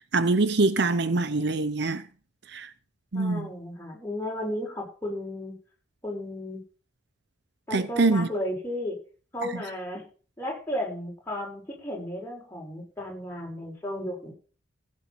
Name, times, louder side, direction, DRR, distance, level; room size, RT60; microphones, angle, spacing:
voice 1, 0.1-2.0 2.5-2.7 3.1-3.5 7.7-8.3, right 3 dB, 55° right, 0.7 m, -24 dB
voice 2, 3.1-5.6 6.0-6.6 7.7-9.0 9.3-10.0 10.4-14.3, left 1 dB, 10° left, 6.4 m, -34 dB
16.0 x 7.4 x 6.0 m
head